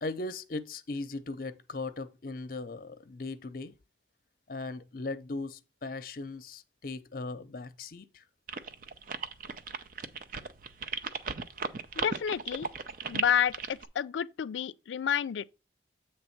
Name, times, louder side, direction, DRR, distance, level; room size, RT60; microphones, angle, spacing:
voice 1, 0.0-3.7 4.5-8.2, left 3 dB, 50° left, 0.6 m, -38 dB
sound 1, 8.5-13.9, right 5 dB, 50° right, 0.6 m, -36 dB
voice 2, 12.0-12.7 13.1-15.4, left 8 dB, 85° left, 0.4 m, -30 dB
8.0 x 3.3 x 5.8 m
head